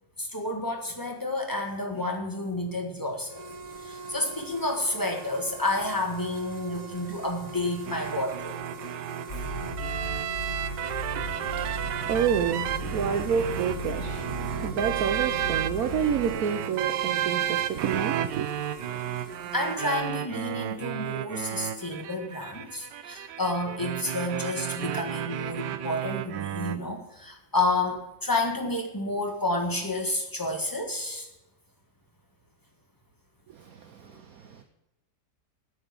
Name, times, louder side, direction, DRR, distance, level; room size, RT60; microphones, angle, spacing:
voice 1, 0.2-3.4 3.8-8.6 19.5-31.3, left 2 dB, 15° left, 1.4 m, -30 dB
sound 1, 3.2-20.0, right 3 dB, 35° right, 0.7 m, -43 dB
sound 2, 7.9-26.8, right 11 dB, 85° right, 1.3 m, -33 dB
sound 3, 9.3-16.4, left 1 dB, 35° left, 1.2 m, -37 dB
voice 2, 11.2-18.5 33.5-34.6, right 7 dB, 65° right, 1.1 m, -29 dB
9.0 x 7.0 x 8.2 m
omnidirectional pair, 1.8 m